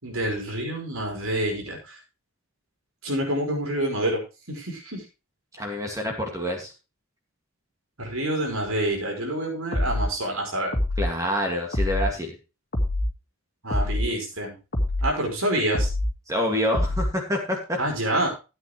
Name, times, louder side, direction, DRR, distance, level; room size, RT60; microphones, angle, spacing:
voice 1, 0.0-2.0 3.0-4.2 4.5-5.0 8.0-10.7 13.6-14.6 15.0-15.9 17.8-18.3, right 1 dB, 85° right, 0 dB, 5.5 m, -27 dB
voice 2, 5.5-6.7 11.0-12.3 16.3-17.8, left 1 dB, 15° right, 1 dB, 2.3 m, -27 dB
sound 1, 9.7-10.1 10.7-11.1 11.7-12.1 12.7-13.1 13.7-14.1 14.7-15.1 15.7-16.1 16.7-17.1, left 1 dB, 45° left, 2.2 m, -25 dB
14.5 x 8.9 x 3.3 m, 0.29 s
head